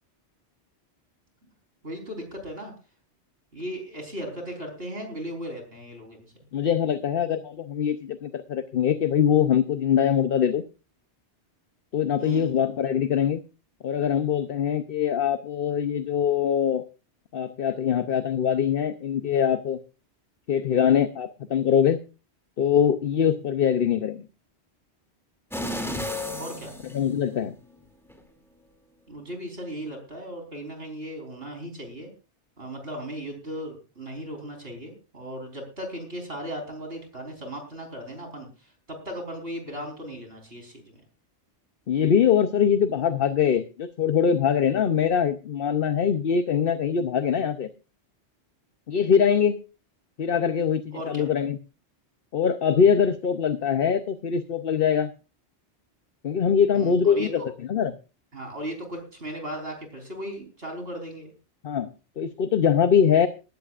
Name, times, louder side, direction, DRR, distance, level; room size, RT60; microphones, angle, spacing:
voice 1, 1.8-2.7 3.5-6.2 12.2-12.5 26.4-26.7 29.1-32.1 32.6-38.5 38.9-40.8 50.9-51.3 56.7-57.5 58.3-61.3, right 1 dB, 60° right, 3 dB, 4.7 m, -36 dB
voice 2, 6.5-10.6 11.9-13.4 13.8-16.9 17.3-19.8 20.5-22.0 22.6-24.3 26.9-27.5 41.9-47.7 48.9-49.6 50.2-51.6 52.3-55.1 56.2-57.4 57.7-58.0 61.6-61.9 62.2-63.3, left 8 dB, 55° left, 10 dB, 0.9 m, -23 dB
sound 1, 25.5-27.6 28.1-28.2, left 1 dB, ahead, 2.6 m, -33 dB
18.5 x 15.0 x 2.5 m, 0.32 s
omnidirectional pair, 1.2 m